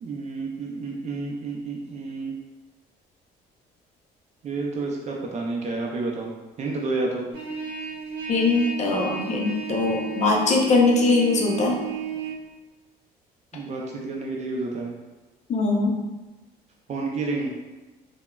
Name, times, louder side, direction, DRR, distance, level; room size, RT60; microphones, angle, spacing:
voice 1, 0.0-2.3 4.4-6.3 6.6-7.3 13.5-14.9 16.9-17.5, right 3 dB, 40° right, -1 dB, 0.4 m, -30 dB
Trumpet, 7.3-12.4, right 7 dB, 85° right, 0.7 m, -33 dB
voice 2, 8.3-11.8 15.5-16.0, left 3 dB, 45° left, -1 dB, 0.5 m, -21 dB
3.3 x 2.1 x 2.2 m, 1.2 s
cardioid pair, 110°, 17 cm